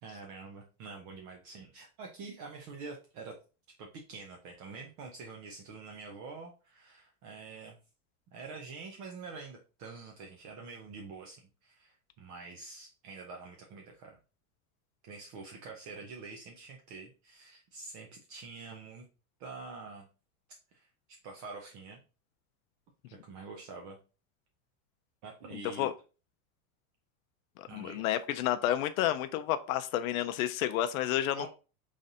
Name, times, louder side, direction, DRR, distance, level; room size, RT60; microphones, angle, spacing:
voice 1, 0.0-3.4 3.8-7.8 8.3-14.2 15.0-19.0 19.4-20.1 20.7-20.9 21.2-22.0 23.1-24.0 25.2-25.9 27.7-28.1 31.3-31.5, right 4 dB, 40° right, 0.7 m, -46 dB
voice 2, 25.5-25.9 27.6-31.5, left 12 dB, 75° left, 0.5 m, -30 dB
3.9 x 3.2 x 2.7 m
supercardioid pair, 140°, 43 cm